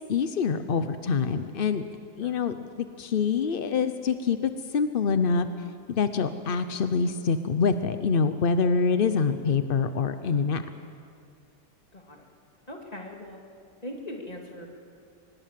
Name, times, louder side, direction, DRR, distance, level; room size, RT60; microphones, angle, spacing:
voice 1, 0.1-1.8 2.2-5.5 5.9-10.6, left 5 dB, 60° left, 10 dB, 0.5 m, -25 dB
voice 2, 11.9-12.3 12.7-13.4 13.8-14.7, left 1 dB, 20° left, 1 dB, 2.7 m, -40 dB
24.5 x 20.0 x 7.6 m, 2.4 s
omnidirectional pair, 2.0 m